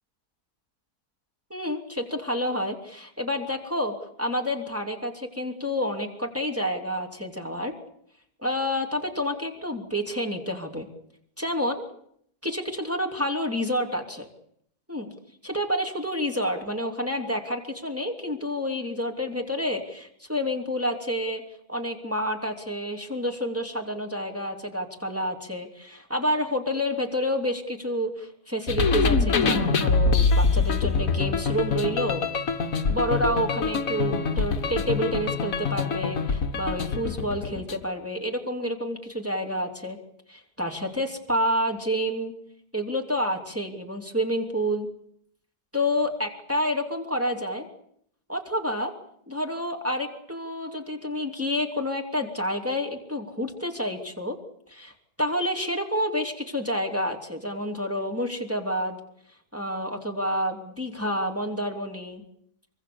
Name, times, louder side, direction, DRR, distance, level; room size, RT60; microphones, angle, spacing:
voice 1, 1.5-7.7 8.4-10.9 11.4-11.8 12.4-14.3 14.9-15.1 15.4-21.4 21.7-32.2 32.9-40.0 40.3-42.3 42.7-44.9 45.7-47.7 48.3-48.9 49.3-54.4 54.7-54.9 55.2-59.0 59.5-62.2, equal, 10° right, 2 dB, 2.9 m, -29 dB
sound 1, 28.7-37.8, left 4 dB, 55° left, 1.8 m, -24 dB
24.5 x 24.0 x 7.0 m, 0.69 s
omnidirectional pair, 1.7 m